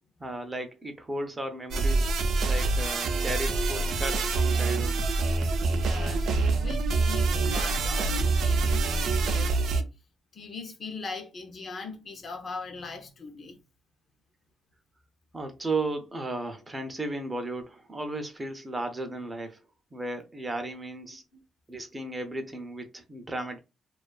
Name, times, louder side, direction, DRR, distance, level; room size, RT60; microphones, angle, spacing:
voice 1, 0.2-2.1 2.4-5.0 15.3-19.6 19.9-21.2 21.7-23.6, right 2 dB, 20° right, 0.5 m, -35 dB
sound 1, 1.7-9.8, right 3 dB, 70° right, 0.4 m, -26 dB
voice 2, 5.7-9.9 10.3-13.6 21.3-21.4, left 3 dB, 45° left, 0.6 m, -40 dB
2.4 x 2.3 x 2.3 m
cardioid pair, 90°, 0 cm